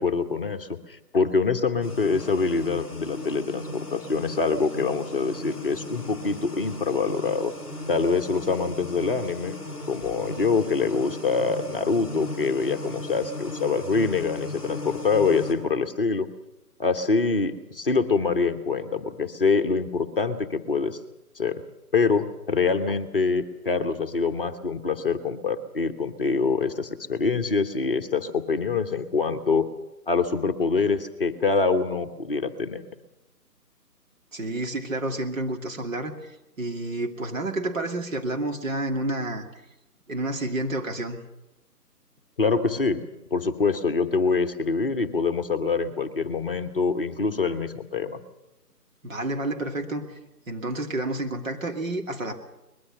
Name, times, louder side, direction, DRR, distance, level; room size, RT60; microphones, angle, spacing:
voice 1, 0.0-7.5 7.9-9.6 9.9-16.3 16.8-21.0 21.4-21.6 21.9-29.7 30.1-32.8 42.4-43.0 43.3-48.2, left 4 dB, 35° left, 7 dB, 1.1 m, -25 dB
sound 1, 1.8-15.5, left 2 dB, 5° right, 4.4 m, -37 dB
voice 2, 34.3-36.3 36.6-39.5 40.1-41.2 49.0-50.0 50.5-52.4, right 2 dB, 55° right, 3 dB, 2.9 m, -29 dB
23.0 x 21.0 x 6.7 m, 0.94 s
figure-of-eight pair, 155°, 48 cm